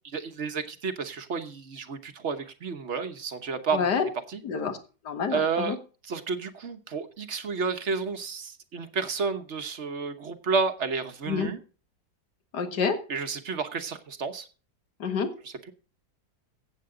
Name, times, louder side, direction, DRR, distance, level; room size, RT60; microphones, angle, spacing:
voice 1, 0.1-3.9 4.3-4.4 5.3-5.8 6.0-11.6 13.1-14.5 15.4-15.5, right 5 dB, 45° right, 1.3 m, -31 dB
voice 2, 3.7-4.0 4.4-4.8 5.1-5.8 11.3-11.5 12.5-13.0 15.0-15.3, left 6 dB, 75° left, 2.1 m, -27 dB
15.5 x 8.1 x 3.8 m
omnidirectional pair, 1.8 m